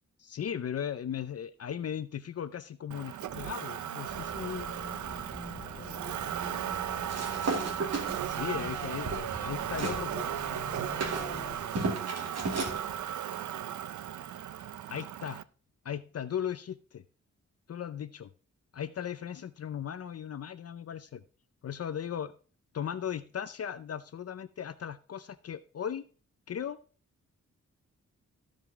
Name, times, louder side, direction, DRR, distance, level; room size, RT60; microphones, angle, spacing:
voice 1, 0.2-4.7 8.3-10.3 14.9-15.4 15.8-17.0 17.7-18.3 18.7-21.2 21.6-22.3 22.7-26.1 26.5-26.8, left 9 dB, 55° left, 12 dB, 0.6 m, -37 dB
Motor vehicle (road), 2.9-15.4, right 10 dB, 85° right, 0.5 m, -36 dB
sound 1, 4.1-11.6, left 3 dB, 20° left, 1.9 m, -46 dB
voice 2, 5.6-7.4 9.7-14.2, right 2 dB, 30° right, 0 dB, 4.6 m, -51 dB
sound 2, 7.1-10.0 10.4-12.8, right 3 dB, 60° right, 2.4 m, -35 dB
14.5 x 5.2 x 3.5 m, 0.39 s
wide cardioid pair, 130°, 29 cm